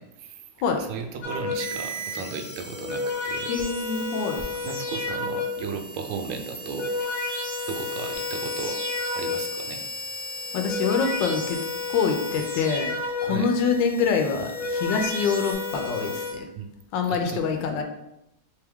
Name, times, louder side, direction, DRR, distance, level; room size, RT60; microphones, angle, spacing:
voice 1, 0.0-0.4 0.9-3.5 4.6-6.9 7.3-8.8 9.1-9.8 13.2-13.5 16.6-16.7 17.3-17.4, right 6 dB, 75° right, 5 dB, 1.2 m, -35 dB
sound 1, 1.2-1.9 2.6-5.8 6.5-9.7 10.4-13.6 14.3-16.3, left 3 dB, 50° left, 1.4 m, -31 dB
sound 2, 1.5-15.5, left 1 dB, 30° right, 0.4 m, -38 dB
voice 2, 3.5-4.4 10.5-11.6 11.9-12.9 13.2-16.5 16.9-17.8, left 5 dB, 75° left, 4 dB, 1.2 m, -25 dB
3.4 x 3.3 x 3.5 m, 0.87 s
omnidirectional pair, 2.2 m